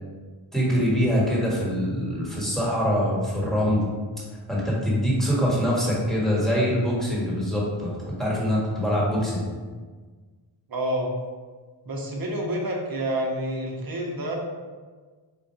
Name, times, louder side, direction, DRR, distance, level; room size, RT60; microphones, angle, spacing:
voice 1, 0.5-3.9 4.5-9.4, equal, ahead, -6 dB, 1.3 m, -24 dB
voice 2, 10.7-11.1 11.8-14.4, right 1 dB, 45° right, 0 dB, 0.8 m, -28 dB
3.7 x 2.5 x 4.4 m, 1.4 s
wide cardioid pair, 90°, 50 cm